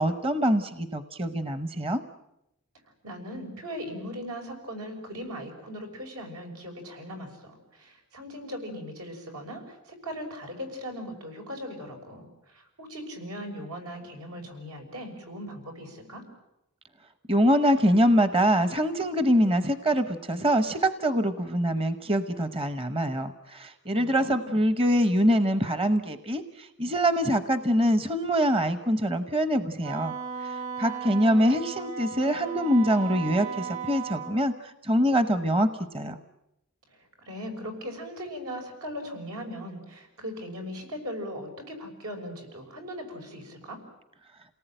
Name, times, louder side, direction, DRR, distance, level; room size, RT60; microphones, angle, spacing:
voice 1, 0.0-2.0 17.3-36.2, equal, 25° right, 11 dB, 0.8 m, -24 dB
voice 2, 3.0-16.2 23.9-24.6 37.0-43.8, equal, 85° right, 3 dB, 6.2 m, -39 dB
Wind instrument woodwind instrument, 29.8-34.3, right 6 dB, 60° right, 4.6 m, -36 dB
28.5 x 18.5 x 9.0 m, 0.88 s
head